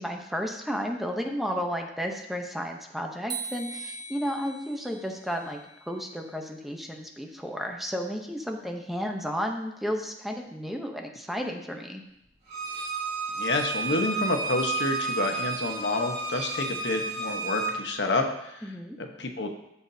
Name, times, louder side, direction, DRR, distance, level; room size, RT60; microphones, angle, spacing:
voice 1, 0.0-5.6 5.9-12.0 18.6-19.0, equal, ahead, 2 dB, 0.8 m, -33 dB
sound 1, 3.3-6.4, right 4 dB, 25° right, 0.9 m, -41 dB
Bowed string instrument, 12.5-17.7, right 3 dB, 40° right, 2.7 m, -31 dB
voice 2, 13.4-18.7 19.0-19.6, left 2 dB, 75° left, 4 dB, 1.1 m, -29 dB
13.0 x 7.0 x 2.7 m, 0.82 s
head